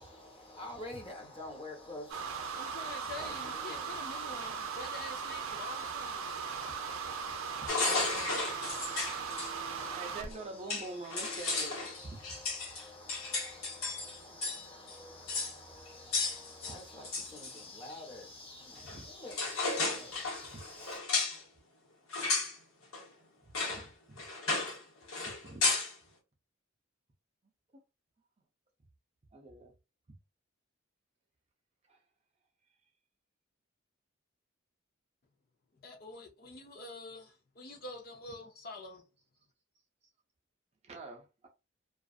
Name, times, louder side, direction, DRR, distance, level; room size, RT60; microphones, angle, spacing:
voice 1, 0.0-21.0, left 1 dB, 25° left, 1.0 m, -49 dB
sound 1, 2.1-10.3, right 6 dB, 85° right, 0.4 m, -38 dB
voice 2, 2.5-6.7 35.8-39.0, left 2 dB, 45° left, 0.6 m, -47 dB
sound 2, 7.7-9.5 10.3-10.4 10.7-14.6 14.9-15.0 15.3-15.6 16.1-17.6 18.9-19.0 19.3-21.4 22.1-22.5 22.9-23.0 23.5-23.8 24.2-24.8 25.1-25.9, left 3 dB, 90° left, 1.1 m, -33 dB
voice 3, 9.9-11.7 12.0-12.2 18.9-19.1 20.5-20.6 23.7-24.2 25.4-25.7 29.3-29.7 31.9-32.0 40.8-41.5, right 3 dB, 30° right, 0.5 m, -45 dB
2.4 x 2.4 x 2.4 m
head